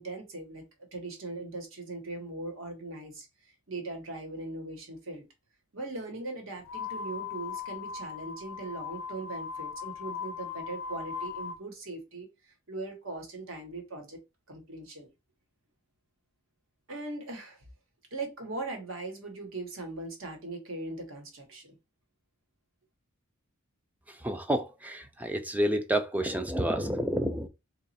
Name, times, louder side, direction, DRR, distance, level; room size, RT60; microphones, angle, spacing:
voice 1, 0.0-3.3 3.7-5.3 5.7-14.2 14.5-15.1 16.9-17.6 18.1-21.8, right 2 dB, 70° right, 1.2 m, -40 dB
sound 1, 6.6-11.6, left 6 dB, 90° left, 0.6 m, -38 dB
voice 2, 24.2-27.5, right 1 dB, 10° right, 0.3 m, -29 dB
3.0 x 2.4 x 4.1 m
head